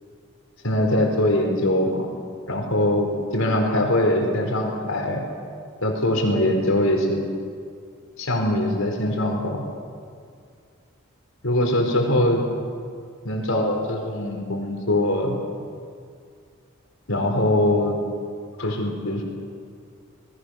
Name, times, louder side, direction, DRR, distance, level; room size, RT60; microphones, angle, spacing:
voice 1, 0.6-2.1 2.5-5.2 5.8-7.2 8.2-9.6 11.4-12.4 13.2-15.4 17.1-18.0 18.6-19.2, left 1 dB, 75° left, 2 dB, 4.7 m, -22 dB
27.5 x 20.5 x 6.6 m, 2.2 s
head